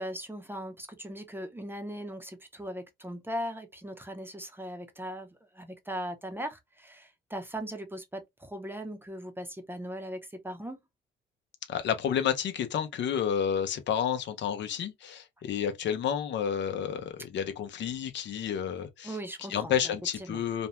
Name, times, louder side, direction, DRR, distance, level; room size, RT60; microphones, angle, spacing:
voice 1, 0.0-10.8 19.0-20.4, equal, 10° right, 0.6 m, -39 dB
voice 2, 11.7-19.2 19.5-20.7, left 8 dB, 65° left, 0.7 m, -30 dB
2.6 x 2.1 x 2.9 m
cardioid pair, 90°, 20 cm